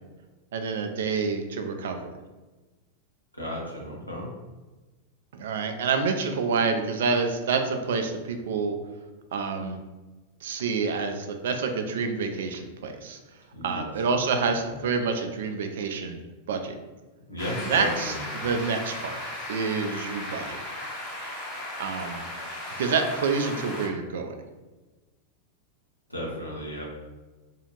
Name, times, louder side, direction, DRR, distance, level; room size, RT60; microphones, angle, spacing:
voice 1, 0.5-2.1 5.3-8.8 9.3-9.8 10.4-13.2 13.6-16.2 16.5-16.8 17.6-19.2 19.5-20.6 21.8-22.2 22.8-24.4, right 4 dB, 60° right, 6 dB, 0.4 m, -28 dB
voice 2, 3.3-4.3 13.5-14.2 14.7-14.9 17.3-18.3 26.1-26.8, equal, 90° left, -4 dB, 0.8 m, -35 dB
sound 1, 17.4-23.9, left 1 dB, 35° left, 1.1 m, -36 dB
2.7 x 2.3 x 3.0 m, 1.2 s
figure-of-eight pair, 90°, 0 cm